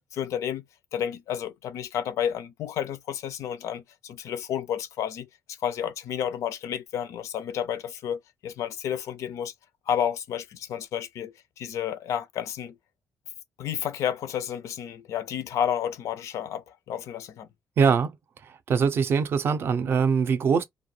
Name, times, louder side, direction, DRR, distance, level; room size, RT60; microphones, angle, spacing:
voice 1, 0.1-0.6 0.9-9.5 9.9-12.8 13.6-17.5, left 9 dB, 65° left, 0.4 m, -31 dB
voice 2, 17.8-18.1 18.7-20.6, right 6 dB, 40° right, 0.4 m, -22 dB
2.2 x 2.1 x 3.1 m
cardioid pair, 170°, 6 cm